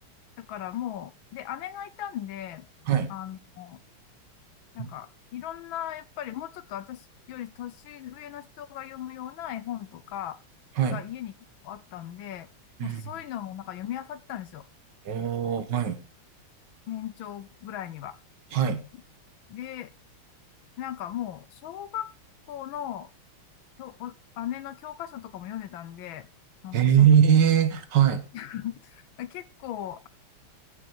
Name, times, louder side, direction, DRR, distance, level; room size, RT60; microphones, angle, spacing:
voice 1, 0.4-2.7 3.1-3.8 4.7-10.4 10.9-11.3 11.6-12.5 12.8-14.7 15.4-15.6 16.9-18.2 19.5-19.9 20.8-22.1 22.5-23.1 23.8-26.3 26.6-27.1 28.3-30.1, left 11 dB, 70° left, 16 dB, 1.4 m, -37 dB
voice 2, 15.1-16.0 18.5-18.8 26.7-28.2, right 9 dB, 60° right, 10 dB, 1.7 m, -21 dB
15.0 x 6.1 x 4.4 m, 0.32 s
omnidirectional pair, 2.3 m